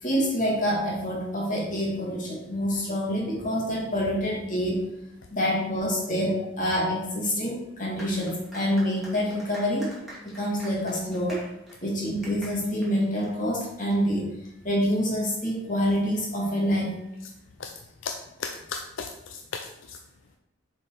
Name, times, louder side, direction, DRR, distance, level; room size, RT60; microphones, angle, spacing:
voice 1, 0.0-4.9 5.3-9.9 10.2-11.4 11.8-14.3 14.6-17.0, equal, 40° left, -2 dB, 2.1 m, -27 dB
sound 1, 8.0-13.9, right 1 dB, ahead, 2.7 m, -45 dB
voice 2, 18.4-20.0, left 5 dB, 70° left, 5 dB, 0.5 m, -36 dB
7.1 x 4.6 x 4.8 m, 0.87 s
head